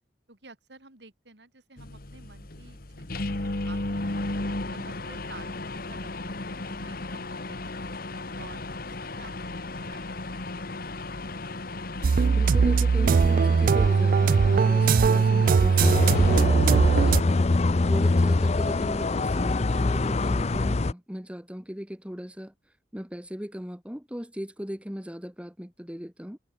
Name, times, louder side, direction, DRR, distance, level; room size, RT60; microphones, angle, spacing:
voice 1, 0.3-4.1 4.7-5.5 5.9-7.8 8.4-10.8, right 3 dB, 70° right, 4.9 m, -51 dB
sound 1, 1.8-16.4, left 2 dB, 55° left, 1.8 m, -35 dB
sound 2, 12.0-17.2, right 5 dB, 50° right, 0.3 m, -20 dB
voice 2, 12.3-17.4 17.9-22.5 22.9-26.4, equal, 5° right, 2.0 m, -37 dB
sound 3, 15.8-20.9, left 2 dB, 35° left, 0.6 m, -24 dB
open air
head